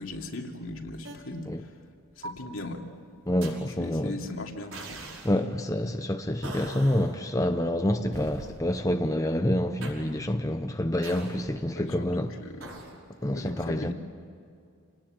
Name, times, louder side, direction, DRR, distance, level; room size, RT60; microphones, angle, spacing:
voice 1, 0.0-1.7 2.2-2.8 3.8-5.0 11.7-12.7 13.2-13.9, left 2 dB, 65° left, 2.8 m, -38 dB
sound 1, 1.0-1.1 2.2-2.5 3.4-3.7 4.7-5.3 6.4-7.1 8.1-8.7 9.8-10.1 11.0-11.5 12.6-12.9, right 2 dB, 65° right, 5.6 m, -41 dB
voice 2, 3.3-4.2 5.2-12.3 13.2-13.9, left 1 dB, 15° left, 0.8 m, -27 dB
28.5 x 19.5 x 8.9 m
head